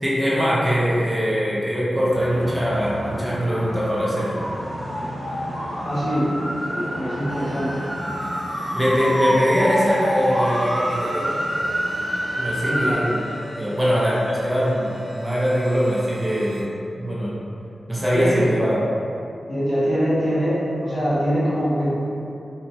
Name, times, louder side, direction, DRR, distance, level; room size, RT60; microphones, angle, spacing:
voice 1, 0.0-4.4 8.6-11.3 12.4-13.1 13.6-16.7 17.0-17.3 17.9-18.8, equal, 10° right, -7 dB, 0.4 m, -22 dB
sound 1, 2.1-12.9, equal, 35° left, 1.4 m, -27 dB
voice 2, 5.8-6.3 6.6-7.8 12.7-13.2 18.1-18.5 19.5-21.9, equal, 65° left, -13 dB, 1.2 m, -23 dB
sound 2, 7.3-16.6, equal, 40° right, 0.7 m, -39 dB
3.0 x 2.1 x 2.6 m, 2.7 s
wide cardioid pair, 135°, 0 cm